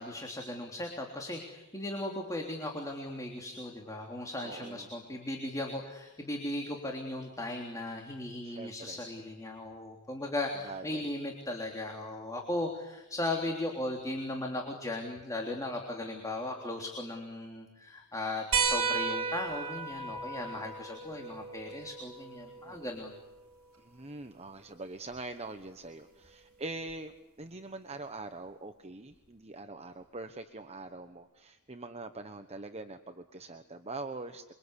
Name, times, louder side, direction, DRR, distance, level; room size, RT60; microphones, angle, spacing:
voice 1, 0.0-23.2, left 1 dB, 15° left, 1 dB, 3.5 m, -37 dB
voice 2, 4.4-4.9 8.4-9.0 10.6-11.1 20.3-20.7 22.6-22.8 23.8-27.1 27.4-34.5, right 2 dB, 30° right, 7 dB, 1.2 m, -43 dB
sound 1, 18.5-23.6 25.1-25.2 26.9-27.0, right 5 dB, 65° right, 3.9 m, -34 dB
28.5 x 24.0 x 8.4 m, 0.98 s
head